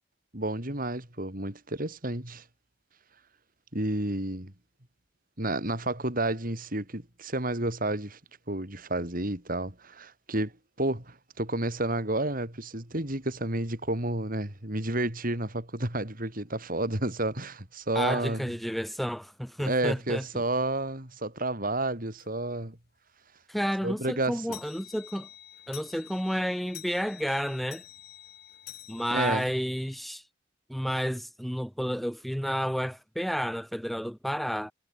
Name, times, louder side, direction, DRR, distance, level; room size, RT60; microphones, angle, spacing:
voice 1, 0.3-2.4 3.7-4.5 5.4-8.2 8.5-10.5 10.8-18.5 19.6-22.8 23.8-24.6 29.1-29.4, right 1 dB, 45° right, 4.7 m, -31 dB
voice 2, 17.9-20.4 23.5-25.3 25.7-27.8 28.9-30.2 30.7-34.7, equal, ahead, 1.8 m, -31 dB
sound 1, 22.2-22.3 22.8-22.9 23.2-23.3 23.7-30.1, left 11 dB, 55° left, 6.2 m, -48 dB
head